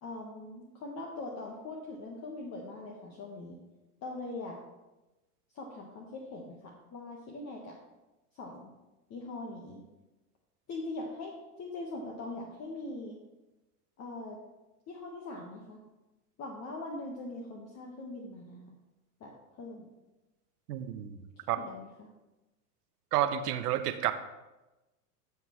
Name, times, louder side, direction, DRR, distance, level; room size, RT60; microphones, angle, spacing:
voice 1, 0.0-3.6 4.0-4.5 5.5-7.8 8.3-8.7 9.1-9.8 10.7-11.3 11.6-13.2 14.0-14.4 14.9-15.8 16.4-18.7 19.2-19.9 21.5-22.1, left 2 dB, 30° left, -1 dB, 1.4 m, -41 dB
voice 2, 20.7-21.2 21.5-21.6 23.1-24.1, right 11 dB, 70° right, 10 dB, 0.9 m, -30 dB
11.5 x 7.1 x 3.1 m, 1.0 s
hypercardioid pair, 105°, 48 cm